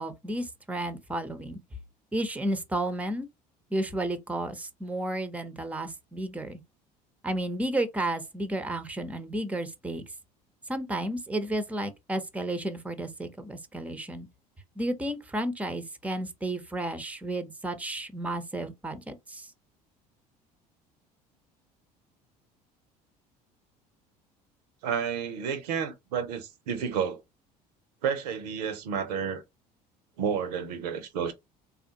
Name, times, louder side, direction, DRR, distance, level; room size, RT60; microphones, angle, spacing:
voice 1, 0.0-1.6 2.1-3.3 3.7-6.6 7.2-10.0 10.7-14.3 14.8-19.5, right 1 dB, 5° right, 0.7 m, -32 dB
voice 2, 24.8-27.2 28.0-29.4 30.2-31.3, right 7 dB, 70° right, 0.7 m, -31 dB
3.5 x 2.4 x 2.8 m
hypercardioid pair, 65°, 21 cm